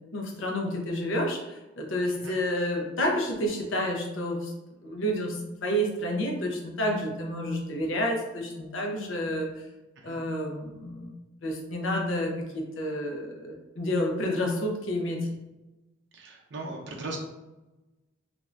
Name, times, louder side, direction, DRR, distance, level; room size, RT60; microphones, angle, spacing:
voice 1, 0.1-4.5 4.8-9.5 10.0-11.2 11.4-12.3 12.8-15.2, equal, 75° left, 0 dB, 0.6 m, -29 dB
voice 2, 16.1-17.2, right 2 dB, 60° right, 0 dB, 0.5 m, -38 dB
2.6 x 2.4 x 3.2 m, 1.0 s
head